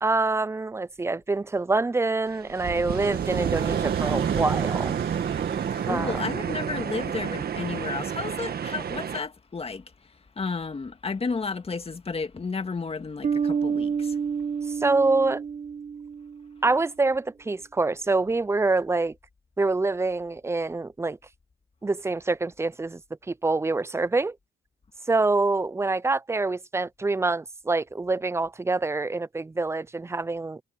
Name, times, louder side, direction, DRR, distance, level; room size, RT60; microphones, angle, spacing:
voice 1, 0.0-4.9 5.9-6.1 14.8-15.4 16.6-19.1 19.6-21.2 21.8-23.0 23.3-24.4 25.1-30.6, right 3 dB, 15° right, 0.5 m, -25 dB
sound 1, 2.3-9.2, right 8 dB, 50° right, 1.5 m, -29 dB
sound 2, 2.9-6.9, right 10 dB, 70° right, 2.8 m, -44 dB
voice 2, 5.7-14.2, left 4 dB, 30° left, 2.0 m, -32 dB
Bass guitar, 13.2-16.7, right 6 dB, 35° right, 1.3 m, -29 dB
cardioid pair, 90°, 20 cm